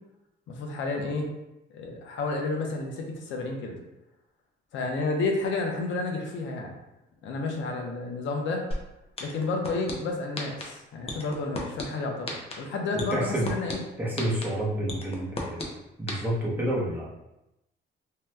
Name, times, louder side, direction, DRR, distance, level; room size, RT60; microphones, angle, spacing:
voice 1, 0.5-1.3 1.7-3.7 4.7-6.7 7.2-8.6 9.2-13.8, left 3 dB, 70° left, 1 dB, 0.7 m, -31 dB
sound 1, 8.7-8.8 9.2-9.9 10.4-10.6 11.1-11.8 12.3-12.5 13.0-13.7 14.2-14.4 14.9-15.6 16.1-16.2, left 3 dB, 30° left, 0.6 m, -33 dB
voice 2, 13.1-13.5 14.0-15.6 16.0-17.1, right 1 dB, 10° right, -6 dB, 0.9 m, -29 dB
2.8 x 2.2 x 3.3 m, 0.92 s
cardioid pair, 125°, 20 cm